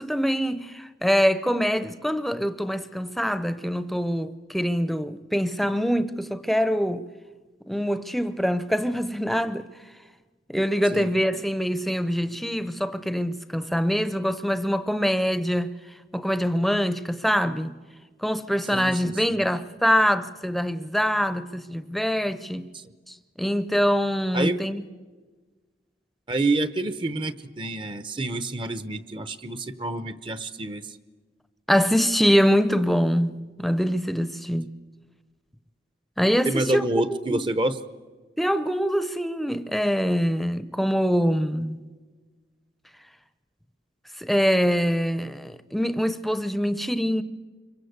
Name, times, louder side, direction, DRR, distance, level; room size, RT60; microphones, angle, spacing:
voice 1, 0.0-7.0 7.7-9.7 10.5-15.7 16.1-17.7 18.2-22.7 23.1-24.8 31.7-34.7 36.2-37.4 38.4-41.8 44.2-47.2, equal, ahead, 0.7 m, -24 dB
voice 2, 18.7-19.4 22.7-22.8 24.3-24.6 26.3-30.8 36.5-37.8, right 2 dB, 30° right, 0.8 m, -28 dB
26.0 x 23.5 x 8.0 m
head